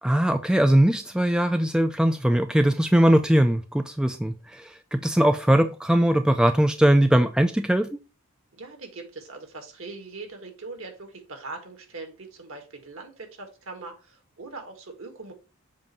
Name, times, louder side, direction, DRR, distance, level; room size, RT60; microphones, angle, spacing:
voice 1, 0.0-7.9, right 1 dB, 5° right, 0.3 m, -20 dB
voice 2, 8.5-15.3, right 3 dB, 65° right, 1.6 m, -41 dB
7.5 x 2.6 x 5.4 m
head